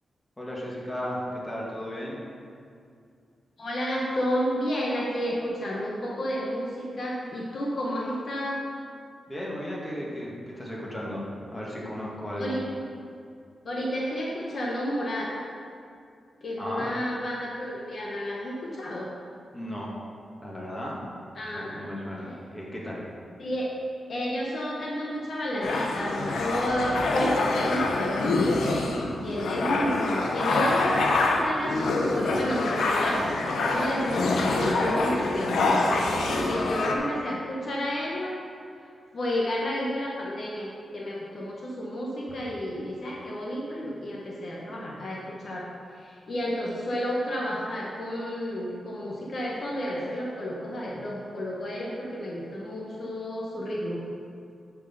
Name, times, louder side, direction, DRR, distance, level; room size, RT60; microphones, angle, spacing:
voice 1, 0.4-2.2 9.3-12.6 16.6-16.9 19.5-20.0 20.4-21.1 21.5-23.0, equal, 15° left, -4 dB, 2.0 m, -35 dB
voice 2, 3.6-8.6 12.4-12.6 13.6-15.3 16.4-19.1 21.3-21.8 22.2-22.4 23.4-23.7 24.1-28.5 29.2-38.3 39.1-54.0, equal, 55° left, -4 dB, 1.2 m, -31 dB
sound 1, 25.6-37.0, left 2 dB, 85° left, 0.8 m, -25 dB
9.7 x 4.7 x 5.5 m, 2.3 s
cardioid pair, 85°, 0 cm